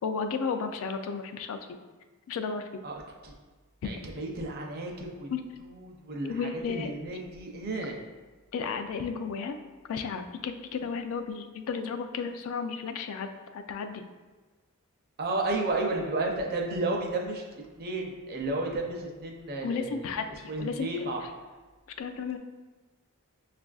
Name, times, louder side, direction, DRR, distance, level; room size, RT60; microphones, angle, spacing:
voice 1, 0.0-1.6 2.3-2.7 5.3-5.4 6.3-6.9 8.5-9.6 9.9-14.0 19.6-20.9 22.0-22.4, left 5 dB, 65° left, 8 dB, 0.3 m, -33 dB
voice 2, 2.8-3.3 3.8-5.3 5.6-8.0 15.2-17.4 17.8-20.1 20.5-21.2, right 2 dB, 45° right, 1 dB, 0.5 m, -32 dB
5.9 x 2.4 x 2.3 m, 1.3 s
head